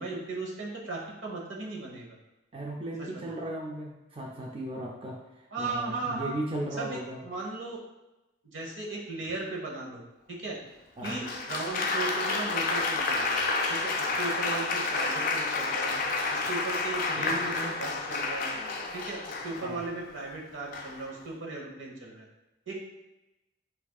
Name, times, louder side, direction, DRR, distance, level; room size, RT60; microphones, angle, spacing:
voice 1, 0.0-2.1 3.0-3.4 5.5-6.3 6.8-7.8 8.4-10.0 10.3-10.6 11.0-13.4 13.7-15.9 16.3-18.5 18.9-22.2 22.7-22.8, right 3 dB, 75° right, -2 dB, 1.0 m, -37 dB
voice 2, 2.5-7.2 11.0-11.2 19.6-19.8, right 1 dB, 25° right, -2 dB, 0.4 m, -36 dB
Applause, 11.0-19.9 20.7-21.1, left 3 dB, 45° left, 0.4 m, -30 dB
7.1 x 2.6 x 2.3 m, 0.99 s
head